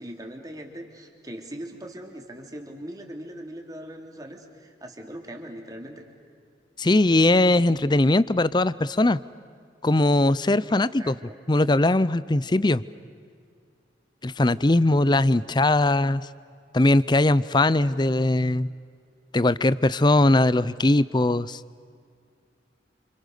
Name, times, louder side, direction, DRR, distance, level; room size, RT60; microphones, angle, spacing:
voice 1, 0.0-6.1 11.0-11.3, right 1 dB, 20° right, 2 dB, 3.2 m, -40 dB
voice 2, 6.8-9.2 9.8-11.1 11.5-12.8 14.2-16.2 16.7-18.7 19.3-21.6, left 2 dB, 25° left, 18 dB, 0.6 m, -20 dB
29.5 x 28.0 x 6.7 m, 2.2 s
head